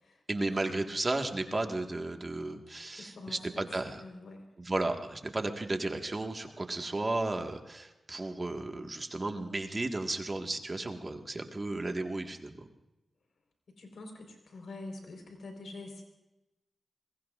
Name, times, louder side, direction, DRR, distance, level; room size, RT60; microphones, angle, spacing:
voice 1, 0.3-4.0 4.6-12.7, right 2 dB, 35° right, 4 dB, 1.7 m, -34 dB
voice 2, 3.0-4.5 13.7-16.0, left 2 dB, 80° left, 3 dB, 4.3 m, -46 dB
26.0 x 21.5 x 2.5 m, 0.99 s
cardioid pair, 60°, 0 cm